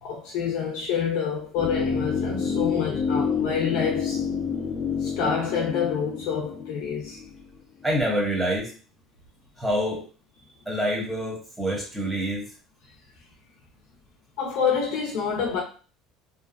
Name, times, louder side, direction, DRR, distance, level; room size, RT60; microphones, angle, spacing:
voice 1, 0.0-4.2 5.0-7.2 14.4-15.6, left 6 dB, 70° left, 0.6 m, -27 dB
sound 1, 1.5-7.6 7.8-7.9, left 6 dB, 35° left, 0.7 m, -28 dB
voice 2, 7.8-8.7 9.6-10.1 10.7-12.5, equal, 5° right, 0.8 m, -26 dB
2.6 x 2.1 x 2.4 m
cardioid pair, 135°, 0 cm